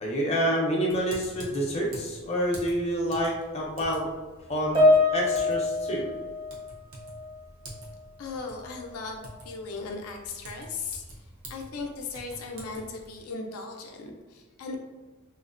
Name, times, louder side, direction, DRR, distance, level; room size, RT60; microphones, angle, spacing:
voice 1, 0.0-4.1 4.5-4.8 5.1-6.1, equal, 30° left, -3 dB, 0.5 m, -28 dB
Typing, 0.9-13.2, right 1 dB, 75° right, 0.7 m, -47 dB
Piano, 4.8-7.4 7.7-8.0 8.8-8.9, left 2 dB, 20° right, 0.5 m, -25 dB
voice 2, 8.2-14.8, left 4 dB, 90° left, 2 dB, 0.4 m, -37 dB
2.5 x 2.0 x 2.4 m, 1.3 s
head